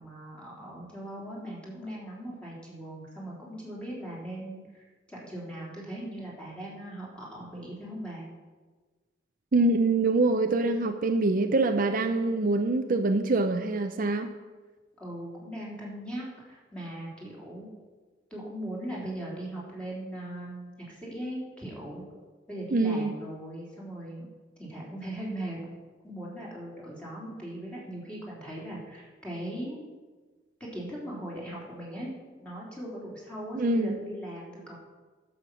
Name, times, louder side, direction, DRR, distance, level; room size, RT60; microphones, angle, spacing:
voice 1, 0.0-8.2 15.0-17.7 18.3-22.0 22.5-24.3 24.6-25.6 26.0-29.8 30.6-32.1 32.4-34.7, right 1 dB, 5° left, -6 dB, 3.4 m, -39 dB
voice 2, 9.5-14.3 22.7-23.1 33.5-34.0, right 2 dB, 45° right, 6 dB, 0.6 m, -25 dB
11.5 x 7.3 x 6.2 m, 1.4 s
head